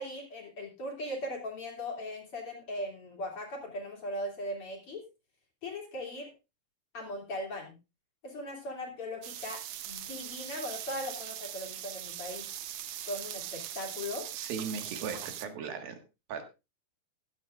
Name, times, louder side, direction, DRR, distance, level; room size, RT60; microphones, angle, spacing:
voice 1, 0.0-5.0 5.6-6.3 6.9-7.7 8.2-12.5 13.0-14.2, left 1 dB, 35° left, 0 dB, 3.3 m, -39 dB
sound 1, 9.2-15.4, right 11 dB, 85° right, 1.6 m, -41 dB
voice 2, 14.3-16.0 16.3-16.4, right 6 dB, 70° right, 5 dB, 3.3 m, -37 dB
15.5 x 11.5 x 2.5 m, 0.27 s
omnidirectional pair, 4.7 m